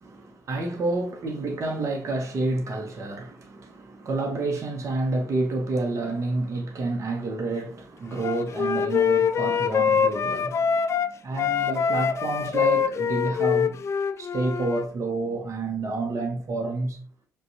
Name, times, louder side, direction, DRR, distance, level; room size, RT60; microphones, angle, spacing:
voice 1, 0.0-10.9 11.2-13.9 14.2-17.0, right 2 dB, 40° right, 1.0 m, -29 dB
Wind instrument woodwind instrument, 8.2-11.1 11.4-14.9, left 7 dB, 35° left, 0.4 m, -24 dB
5.1 x 2.4 x 2.8 m
figure-of-eight pair, 50°, 8 cm